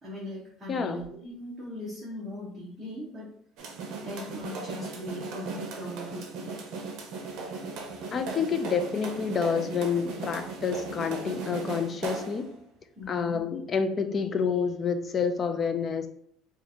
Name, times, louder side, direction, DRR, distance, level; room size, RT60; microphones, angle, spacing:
voice 1, 0.0-3.3 3.7-6.5 12.9-13.4, left 1 dB, 10° right, -10 dB, 1.0 m, -40 dB
voice 2, 0.7-1.0 8.1-12.5 13.1-16.1, left 6 dB, 25° left, 7 dB, 0.3 m, -28 dB
sound 1, 3.6-12.5, right 3 dB, 55° right, 0.7 m, -37 dB
2.9 x 2.5 x 4.2 m, 0.66 s
cardioid pair, 170°, 0 cm